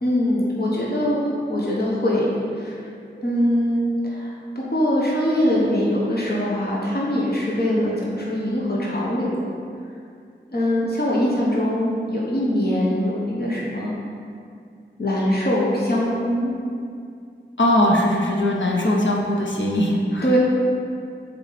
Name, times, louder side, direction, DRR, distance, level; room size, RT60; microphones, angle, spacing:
voice 1, 0.0-2.3 2.5-2.8 3.2-9.5 10.5-13.9 15.0-16.5 20.2-20.4, equal, 55° left, -5 dB, 1.3 m, -22 dB
voice 2, 17.6-20.4, left 1 dB, 85° left, -1 dB, 0.8 m, -20 dB
7.2 x 4.5 x 4.2 m, 2.3 s
wide cardioid pair, 45°, 19 cm